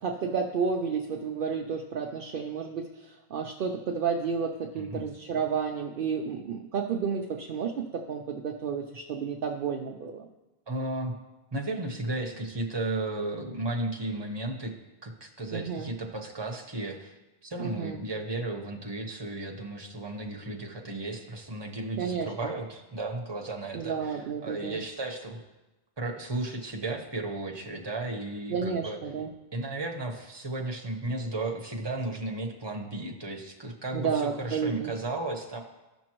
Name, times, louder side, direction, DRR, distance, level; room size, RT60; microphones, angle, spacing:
voice 1, 0.0-10.3 15.5-15.9 17.6-18.0 22.0-22.5 23.7-24.8 28.5-29.3 33.9-34.9, right 6 dB, 60° right, 2 dB, 0.7 m, -31 dB
voice 2, 4.8-5.1 10.7-11.2 11.5-14.7 15.0-17.1 17.4-25.4 26.0-29.0 29.5-35.6, right 2 dB, 25° right, 1 dB, 1.0 m, -34 dB
14.5 x 6.2 x 3.0 m, 1.0 s
omnidirectional pair, 1.1 m